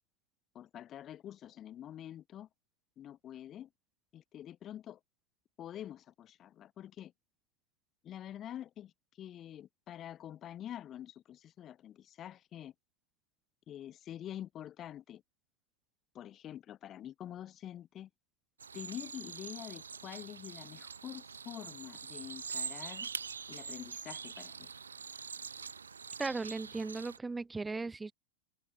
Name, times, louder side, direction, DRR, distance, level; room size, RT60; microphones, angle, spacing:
voice 1, 0.5-2.5 3.0-3.7 4.1-5.0 5.6-7.1 8.0-8.9 9.2-12.7 13.7-15.2 16.1-18.1 18.7-23.1 23.5-24.7, left 11 dB, 30° left, 2.1 m, -46 dB
sound 1, 18.6-27.2, right 6 dB, 75° right, 1.7 m, -44 dB
voice 2, 26.2-28.1, right 3 dB, 10° right, 0.7 m, -37 dB
figure-of-eight pair, 90°, 0 cm